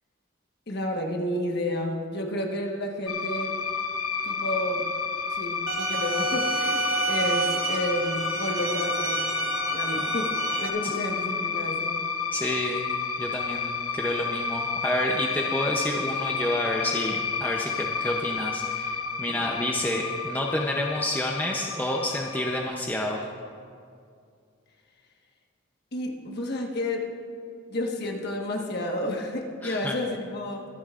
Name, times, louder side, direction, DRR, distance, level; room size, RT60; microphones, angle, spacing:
voice 1, 0.7-3.6 4.2-4.9 5.3-9.2 9.7-12.0 19.3-19.5 25.9-27.1 27.7-30.7, left 1 dB, 50° left, 1 dB, 1.4 m, -31 dB
sound 1, 3.1-22.7, left 5 dB, 90° left, 0.8 m, -31 dB
sound 2, 5.7-10.7, right 3 dB, 85° right, 1.2 m, -30 dB
voice 2, 12.3-12.9 13.2-23.2 29.6-29.9, left 1 dB, 10° left, -1 dB, 0.7 m, -29 dB
24.0 x 10.0 x 2.5 m, 2.3 s
head